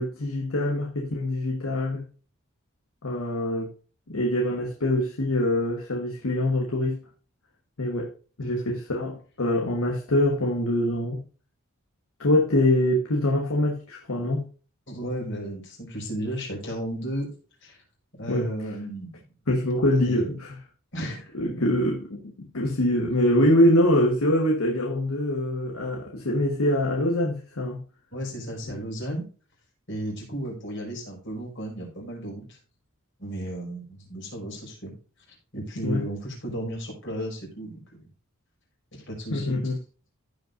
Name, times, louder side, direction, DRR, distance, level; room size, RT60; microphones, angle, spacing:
voice 1, 0.0-2.1 3.0-3.7 4.1-7.0 7.8-8.1 8.4-11.2 12.2-14.5 18.3-18.5 19.5-20.6 21.3-27.8 35.8-36.1 39.3-39.8, left 1 dB, 85° left, 1.4 m, -24 dB
voice 2, 8.4-8.7 14.9-17.3 17.6-17.8 18.1-19.2 20.0-20.4 20.9-21.3 28.1-29.2 29.9-32.6 33.2-34.9 35.5-38.1 38.9-39.6, right 1 dB, 55° left, 5.1 m, -34 dB
15.5 x 5.5 x 2.6 m
head